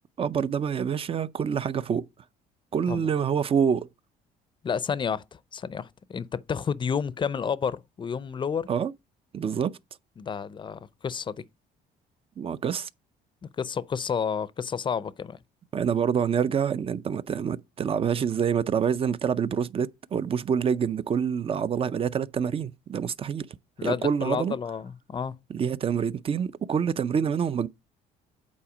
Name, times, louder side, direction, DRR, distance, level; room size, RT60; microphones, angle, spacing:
voice 1, 0.2-2.1 2.7-3.9 8.7-8.9 9.3-9.8 12.4-12.9 15.7-23.5 23.8-24.6 25.5-27.7, right 7 dB, 35° right, 0.5 m, -26 dB
voice 2, 4.6-8.7 10.2-11.4 13.6-15.4 23.8-25.4, left 6 dB, 30° left, 0.5 m, -30 dB
8.6 x 4.1 x 5.0 m
cardioid pair, 110°, 17 cm